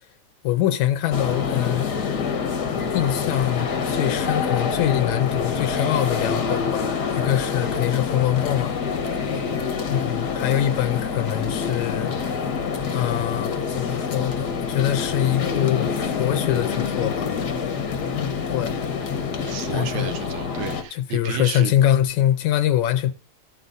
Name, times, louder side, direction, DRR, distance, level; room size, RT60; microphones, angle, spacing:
voice 1, 0.4-1.9 2.9-8.8 9.9-12.1 12.9-17.3 18.5-18.7 19.7-20.2 20.9-23.1, left 12 dB, 80° left, 1.8 m, -24 dB
sound 1, 1.1-20.8, left 6 dB, 65° left, 1.0 m, -26 dB
voice 2, 9.3-9.8 19.4-21.7, right 10 dB, 75° right, 1.9 m, -33 dB
13.5 x 8.0 x 2.6 m
omnidirectional pair, 3.4 m